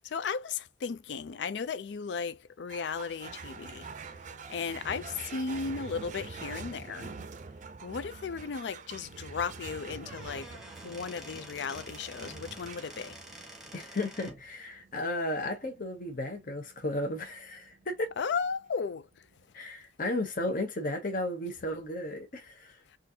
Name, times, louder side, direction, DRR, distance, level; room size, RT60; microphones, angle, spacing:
voice 1, 0.0-3.9 4.5-7.1 7.8-10.5 10.8-13.2 18.2-19.1, left 5 dB, 70° left, 0.4 m, -35 dB
sound 1, 2.7-19.4, right 4 dB, 45° right, 0.5 m, -46 dB
Squeak / Wood, 10.0-14.5, right 1 dB, ahead, 1.1 m, -48 dB
voice 2, 13.7-18.1 19.5-22.7, left 1 dB, 50° left, 0.8 m, -34 dB
3.9 x 2.5 x 2.7 m
head